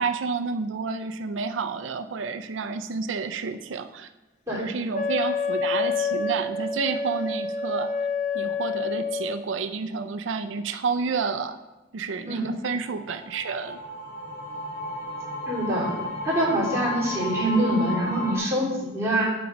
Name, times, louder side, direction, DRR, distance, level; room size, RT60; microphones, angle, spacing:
voice 1, 0.0-4.1 4.6-7.9 8.3-11.6 11.9-13.8, right 5 dB, 75° right, 10 dB, 0.5 m, -30 dB
Wind instrument woodwind instrument, 4.9-9.4, left 5 dB, 40° left, 0.7 m, -28 dB
sound 1, 12.6-18.4, left 1 dB, 65° left, 2.8 m, -33 dB
voice 2, 15.5-15.9 16.2-19.3, right 1 dB, 15° right, -7 dB, 3.1 m, -25 dB
8.4 x 6.0 x 5.1 m, 1.1 s
head